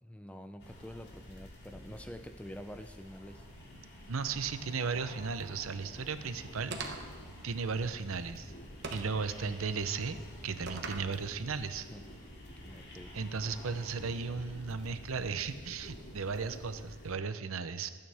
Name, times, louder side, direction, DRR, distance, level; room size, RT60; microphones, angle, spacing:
voice 1, 0.0-3.5 11.9-12.0 12.6-13.1, equal, 5° left, 7 dB, 0.4 m, -47 dB
sound 1, 0.6-17.1, equal, 50° left, 2.6 m, -49 dB
voice 2, 4.1-6.8 7.4-8.5 8.9-10.2 10.4-11.9 13.1-17.9, right 5 dB, 75° right, 11 dB, 0.7 m, -35 dB
sound 2, 6.7-7.2 8.8-9.2 10.7-11.1, right 3 dB, 50° right, 1.1 m, -40 dB
24.0 x 8.9 x 3.5 m, 1.5 s
head